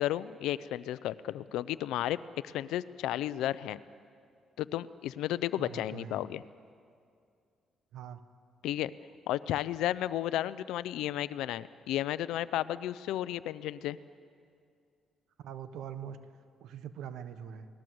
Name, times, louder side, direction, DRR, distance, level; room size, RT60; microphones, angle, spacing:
voice 1, 0.0-2.2 2.4-3.8 4.6-6.4 8.6-8.9 9.3-14.0, left 13 dB, 90° left, 16 dB, 0.6 m, -33 dB
voice 2, 5.6-6.2 7.9-8.2 15.4-16.2 16.6-17.7, right 9 dB, 80° right, 11 dB, 1.3 m, -43 dB
28.5 x 19.5 x 7.9 m, 2.3 s
cardioid pair, 90°, 0 cm